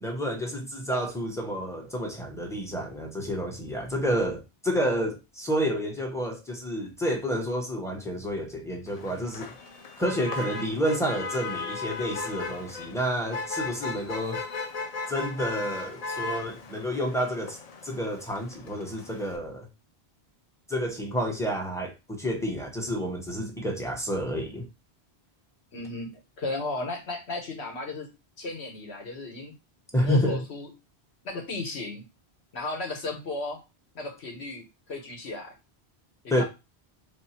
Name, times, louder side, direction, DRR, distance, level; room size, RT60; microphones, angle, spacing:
voice 1, 0.0-9.5 10.0-14.4 15.1-17.6 17.8-19.7 20.7-24.7 29.9-30.4 36.3-36.4, equal, 5° left, 0.7 m, -29 dB
Motor vehicle (road), 8.9-19.4, left 4 dB, 45° left, 0.5 m, -37 dB
voice 2, 25.7-28.1 28.4-29.5 30.0-30.7 31.2-32.0 32.5-33.6 33.9-35.5 36.2-36.4, left 2 dB, 75° left, 1.4 m, -35 dB
3.4 x 2.6 x 4.2 m
omnidirectional pair, 1.1 m